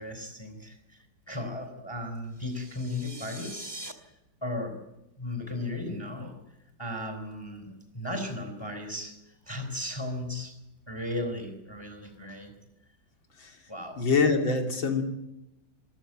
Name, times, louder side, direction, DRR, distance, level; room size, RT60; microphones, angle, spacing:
voice 1, 0.0-3.8 4.4-4.8 5.2-6.4 6.8-10.6 10.9-12.5 13.7-14.0, left 1 dB, 15° left, 6 dB, 3.7 m, -36 dB
sound 1, 2.3-3.9, right 1 dB, 15° right, 1.9 m, -43 dB
voice 2, 14.0-15.0, left 4 dB, 85° left, 3 dB, 3.6 m, -25 dB
27.0 x 14.5 x 8.9 m, 0.91 s
omnidirectional pair, 2.1 m